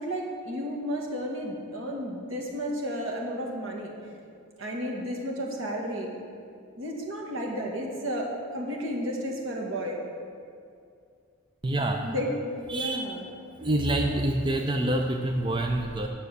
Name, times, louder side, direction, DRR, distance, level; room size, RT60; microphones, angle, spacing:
voice 1, 0.0-3.9 4.6-6.2 6.8-10.0 12.0-13.2, equal, 70° right, -1 dB, 1.8 m, -32 dB
voice 2, 11.6-12.1 12.7-13.0 13.6-16.1, right 1 dB, 25° right, 3 dB, 0.5 m, -26 dB
9.5 x 6.9 x 6.7 m, 2.4 s
head